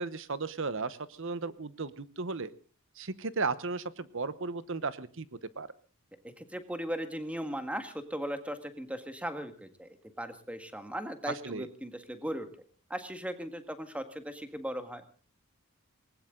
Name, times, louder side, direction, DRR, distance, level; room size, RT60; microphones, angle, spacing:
voice 1, 0.0-2.5 3.0-5.3 5.6-5.7 11.3-11.7, right 4 dB, 60° right, 15 dB, 1.0 m, -35 dB
voice 2, 6.4-9.9 10.2-12.5 12.9-15.0, equal, 5° right, 8 dB, 1.7 m, -38 dB
20.0 x 19.0 x 3.9 m, 0.38 s
head